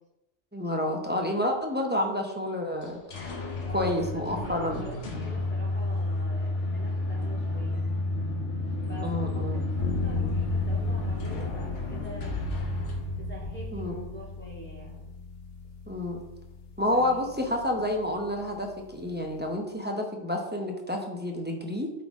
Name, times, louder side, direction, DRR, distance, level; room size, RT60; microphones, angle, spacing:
voice 1, 0.5-3.0 3.7-4.8 9.0-9.6 13.7-13.9 15.9-16.3 16.8-21.9, left 1 dB, 10° right, 1 dB, 0.7 m, -29 dB
sound 1, 2.8-14.5, left 2 dB, 80° left, 1.4 m, -31 dB
voice 2, 3.7-7.8 8.9-12.4 13.2-15.1 16.9-17.3, equal, 10° left, -5 dB, 2.0 m, -44 dB
sound 2, 9.8-19.5, left 4 dB, 60° left, 1.0 m, -37 dB
8.5 x 4.2 x 3.6 m, 0.94 s
omnidirectional pair, 1.2 m